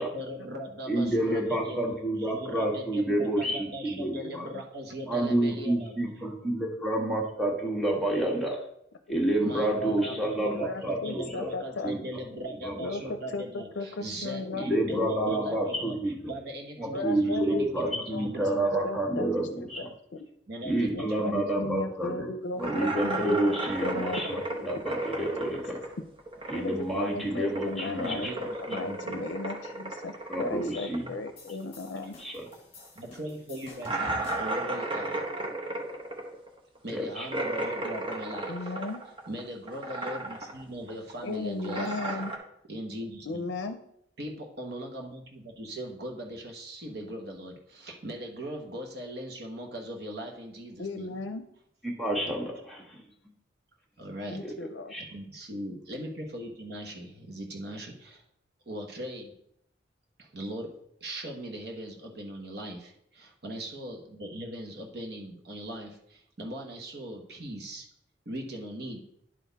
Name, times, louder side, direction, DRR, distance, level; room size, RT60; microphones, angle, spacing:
voice 1, 0.0-1.8 2.1-6.1 9.4-18.7 20.5-21.4 28.0-29.3 32.9-35.2 36.8-38.7 39.3-42.2 42.7-43.5 44.2-51.2 54.0-54.4 54.9-58.2 58.7-59.3 60.2-60.7 61.0-67.9 68.2-69.0, right 1 dB, 55° right, 2 dB, 1.2 m, -39 dB
voice 2, 0.9-4.4 5.1-8.6 9.1-11.5 11.8-12.0 12.6-13.1 14.6-16.3 16.8-19.9 20.6-22.3 22.6-25.8 26.5-28.3 30.3-31.0 32.2-32.4 36.9-37.3 51.8-53.0 54.4-54.5 54.9-55.1, right 1 dB, ahead, -3 dB, 1.4 m, -29 dB
voice 3, 9.4-11.9 12.8-15.6 16.9-18.3 18.8-19.3 19.6-20.3 20.9-23.4 23.8-24.8 25.4-25.8 26.5-32.1 38.5-39.0 41.2-42.3 43.3-43.8 50.8-51.5 54.3-54.9, left 3 dB, 80° left, 7 dB, 0.5 m, -36 dB
sound 1, 22.6-26.9 27.1-32.2 32.5-32.6 33.0-33.1 33.8-39.4 39.7-40.6 40.9-42.4, right 2 dB, 25° right, 1.0 m, -34 dB
sound 2, 31.4-34.7, left 2 dB, 30° left, 1.7 m, -49 dB
11.0 x 4.2 x 4.0 m, 0.73 s
head